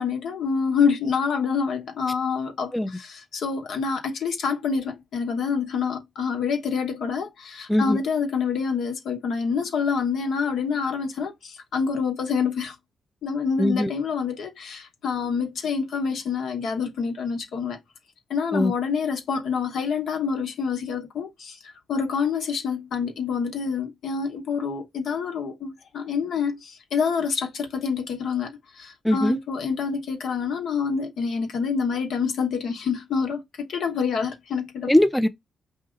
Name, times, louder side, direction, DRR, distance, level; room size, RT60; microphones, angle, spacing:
voice 1, 0.0-12.7 13.2-17.8 18.3-21.6 21.9-34.9, left 6 dB, 75° left, 1.0 m, -27 dB
voice 2, 7.7-8.0 13.6-13.9 18.5-18.7 29.0-29.4 34.9-35.3, left 1 dB, 5° left, 0.5 m, -20 dB
5.0 x 2.7 x 3.7 m
cardioid pair, 65°, 0 cm